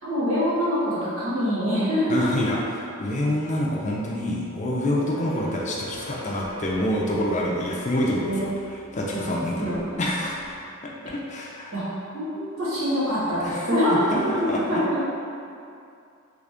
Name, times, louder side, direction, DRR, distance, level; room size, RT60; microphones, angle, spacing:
voice 1, 0.0-2.5 8.2-8.5 9.1-9.8 11.7-11.8 12.1-15.0, equal, 65° right, -10 dB, 1.2 m, -25 dB
voice 2, 2.1-8.5 8.9-10.6 11.0-11.7 13.4-13.7 14.1-14.8, left 1 dB, 35° left, -3 dB, 0.4 m, -27 dB
sound 1, 5.0-10.6, equal, 90° right, 1.4 m, -43 dB
3.4 x 2.5 x 3.4 m, 2.5 s
head